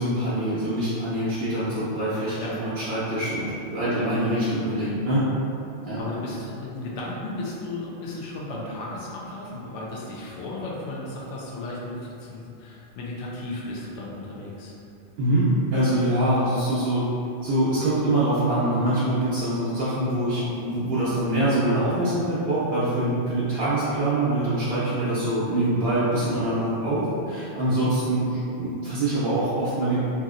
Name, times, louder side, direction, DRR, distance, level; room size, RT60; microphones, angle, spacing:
voice 1, 0.0-5.2 5.8-6.0 15.2-17.0 17.4-30.0, right 1 dB, 60° right, -11 dB, 0.8 m, -24 dB
voice 2, 6.0-14.7 27.7-27.9, left 2 dB, 80° left, -4 dB, 0.9 m, -35 dB
2.7 x 2.7 x 2.4 m, 2.7 s
omnidirectional pair, 1.2 m